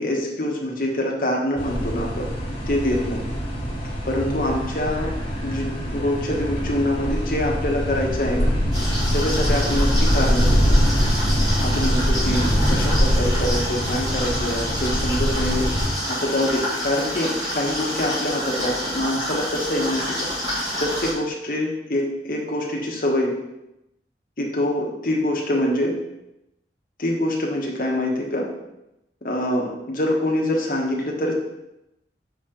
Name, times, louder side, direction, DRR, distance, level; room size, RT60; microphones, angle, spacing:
voice 1, 0.0-2.3 2.7-3.2 4.0-5.1 5.4-8.5 9.1-10.8 11.6-15.7 16.1-20.3 20.8-23.3 24.4-25.9 27.0-28.5 29.2-31.3, left 1 dB, 50° left, -1 dB, 1.1 m, -25 dB
sound 1, 1.6-15.9, equal, 30° left, 1.1 m, -23 dB
sound 2, 8.7-21.1, equal, 20° right, 1.9 m, -28 dB
5.9 x 4.4 x 3.8 m, 0.89 s
head